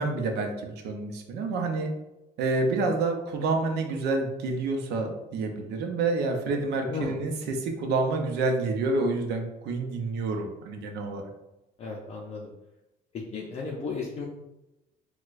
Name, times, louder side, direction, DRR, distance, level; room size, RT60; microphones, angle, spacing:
voice 1, 0.0-1.9 2.4-11.2, right 3 dB, 80° right, 4 dB, 0.6 m, -28 dB
voice 2, 11.8-12.5 13.1-14.3, left 4 dB, 40° left, -2 dB, 0.5 m, -34 dB
4.3 x 2.2 x 2.4 m, 0.96 s
cardioid pair, 110°, 17 cm